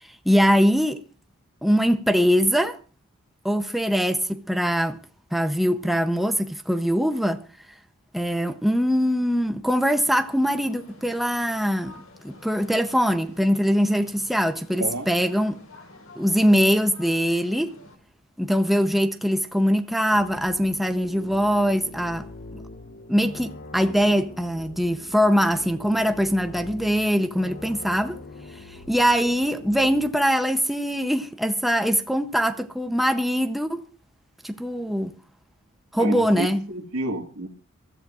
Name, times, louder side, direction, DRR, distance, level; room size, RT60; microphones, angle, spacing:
voice 1, 0.2-1.0 1.6-2.8 3.4-5.0 5.3-7.4 8.1-15.6 16.2-17.7 18.4-22.3 22.5-22.6 23.1-28.2 28.5-33.8 34.4-35.1 35.9-36.6, equal, ahead, 0.6 m, -22 dB
sound 1, 9.7-18.0, left 2 dB, 65° left, 2.4 m, -50 dB
voice 2, 14.8-15.1 36.0-37.5, right 1 dB, 80° right, 1.7 m, -30 dB
sound 2, 20.1-30.1, left 2 dB, 40° left, 1.0 m, -42 dB
26.0 x 13.5 x 2.5 m
head